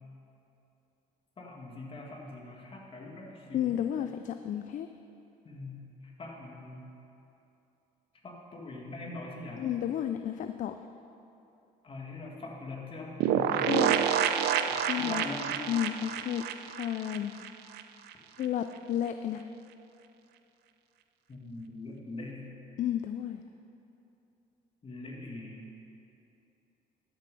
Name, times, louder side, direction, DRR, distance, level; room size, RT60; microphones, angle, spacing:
voice 1, 1.4-3.8 5.5-5.9 6.2-6.9 8.2-9.7 11.8-13.7 14.7-15.7 21.3-22.5 24.8-25.7, left 2 dB, 30° left, -1 dB, 2.0 m, -42 dB
voice 2, 3.5-4.9 9.6-10.8 13.7-14.0 14.8-15.3 15.7-17.3 18.4-19.5 22.8-23.4, left 10 dB, 50° left, 8 dB, 0.4 m, -32 dB
sound 1, 13.2-17.8 18.1-18.2 18.4-18.5, right 9 dB, 80° right, 0.5 m, -28 dB
12.5 x 6.8 x 5.4 m, 2.8 s
cardioid pair, 110°, 17 cm